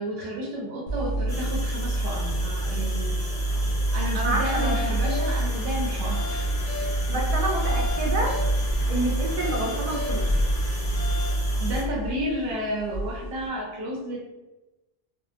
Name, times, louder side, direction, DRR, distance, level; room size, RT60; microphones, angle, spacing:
voice 1, 0.0-3.4 3.9-6.5 11.6-14.2, equal, 75° right, -1 dB, 0.8 m, -32 dB
sound 1, 0.9-13.5, right 1 dB, 75° left, 0.9 m, -27 dB
sound 2, 1.3-11.8, left 1 dB, 40° left, 0.8 m, -38 dB
voice 2, 4.1-4.8 6.8-8.3 8.9-10.3, right 2 dB, 45° right, -2 dB, 0.6 m, -28 dB
sound 3, 4.4-11.3, left 3 dB, 15° left, 1.0 m, -38 dB
2.7 x 2.1 x 2.4 m, 1.0 s
omnidirectional pair, 1.1 m